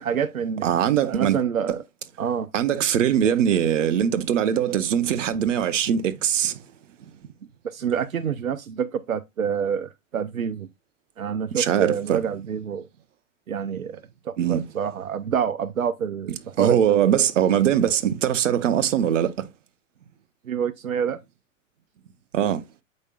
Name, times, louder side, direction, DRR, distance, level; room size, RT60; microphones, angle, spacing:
voice 1, 0.0-0.7 1.1-1.8 2.2-2.5 7.6-10.7 11.2-12.9 13.5-14.0 14.3-17.0 20.5-21.2, right 7 dB, 85° right, 0.6 m, -27 dB
voice 2, 0.6-1.4 2.5-6.5 11.5-12.2 14.4-14.6 16.6-19.3 22.3-22.6, right 9 dB, 65° right, 0.9 m, -21 dB
8.1 x 5.3 x 2.3 m
figure-of-eight pair, 105°, 40 cm